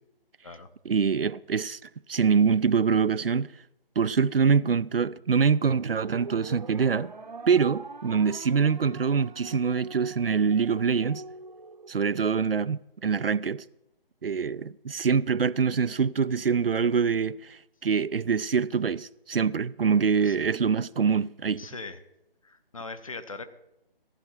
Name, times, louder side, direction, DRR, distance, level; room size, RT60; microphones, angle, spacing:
voice 1, 0.9-1.8 2.1-3.5 4.0-7.1 7.5-11.2 11.9-13.6 14.2-21.6, right 6 dB, 70° right, 0.5 m, -24 dB
sound 1, 5.7-12.2, right 4 dB, 50° right, 0.8 m, -43 dB
voice 2, 21.6-22.0 22.4-23.5, left 3 dB, 35° left, 0.8 m, -40 dB
15.0 x 10.5 x 4.5 m
figure-of-eight pair, 155°, 30 cm